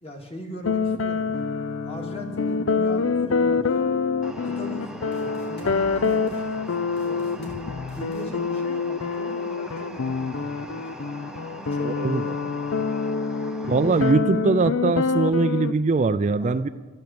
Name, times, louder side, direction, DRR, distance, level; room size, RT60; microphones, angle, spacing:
voice 1, 0.0-1.4 1.8-3.6 4.4-7.6 7.9-11.2 11.6-13.0 16.4-16.7, right 1 dB, 30° left, 1 dB, 2.3 m, -40 dB
sound 1, 0.6-15.7, left 5 dB, 80° left, 0.6 m, -26 dB
sound 2, 4.2-14.1, right 1 dB, 5° right, 0.7 m, -42 dB
sound 3, 5.1-5.8 6.0-6.4 7.0-7.6 7.9-8.2, left 1 dB, 55° left, 3.0 m, -44 dB
voice 2, 11.8-12.2 13.7-16.7, right 3 dB, 35° right, 11 dB, 0.4 m, -21 dB
13.5 x 10.5 x 7.7 m, 1.2 s
head